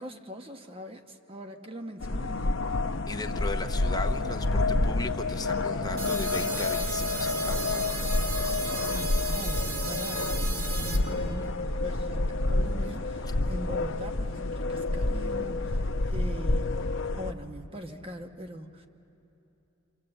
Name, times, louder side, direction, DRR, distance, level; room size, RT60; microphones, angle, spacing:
voice 1, 0.0-2.5 8.9-18.9, equal, 30° right, 5 dB, 1.1 m, -42 dB
sound 1, 2.0-17.3, left 2 dB, 65° left, 0.8 m, -29 dB
voice 2, 3.1-8.1, left 2 dB, 20° left, 5 dB, 0.8 m, -37 dB
sound 2, 6.0-11.0, right 3 dB, 90° right, 2.5 m, -35 dB
29.0 x 25.5 x 7.8 m, 3.0 s
head